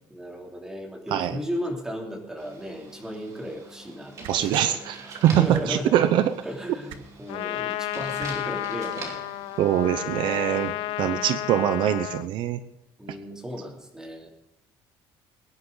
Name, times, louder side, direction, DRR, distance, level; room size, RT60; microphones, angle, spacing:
voice 1, 0.1-4.8 5.0-6.1 6.4-9.3 10.9-11.3 13.0-14.3, equal, 5° right, 0 dB, 3.1 m, -35 dB
sound 1, 2.4-10.7, right 3 dB, 35° right, 3.0 m, -44 dB
sound 2, 4.2-4.4 5.5-5.6 6.9-7.0 8.2-8.3 9.5-9.6, right 10 dB, 80° right, 1.5 m, -41 dB
voice 2, 4.3-5.0 5.2-6.3 9.6-12.6, right 11 dB, 60° right, 11 dB, 0.8 m, -23 dB
Trumpet, 7.3-12.3, left 16 dB, 80° left, 0.5 m, -32 dB
22.5 x 11.0 x 4.0 m, 0.90 s
cardioid pair, 175°, 9 cm